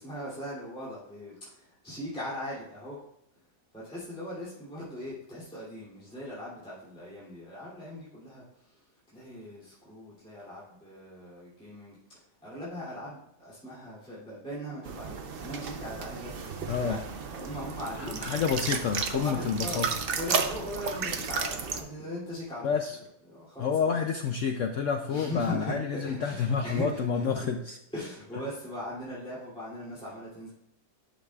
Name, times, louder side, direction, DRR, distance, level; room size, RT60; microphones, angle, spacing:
voice 1, 0.0-3.0 3.7-17.0 17.3-18.2 19.1-19.8 20.1-22.8 23.3-23.8 25.0-27.5 27.9-30.5, equal, 5° left, -9 dB, 2.6 m, -39 dB
sound 1, 14.8-21.8, right 5 dB, 80° right, 0.5 m, -33 dB
voice 2, 16.7-17.0 18.0-19.9 22.6-23.0 23.6-27.8, left 6 dB, 85° left, 4 dB, 0.6 m, -29 dB
10.5 x 6.0 x 2.3 m, 0.79 s
omnidirectional pair, 1.9 m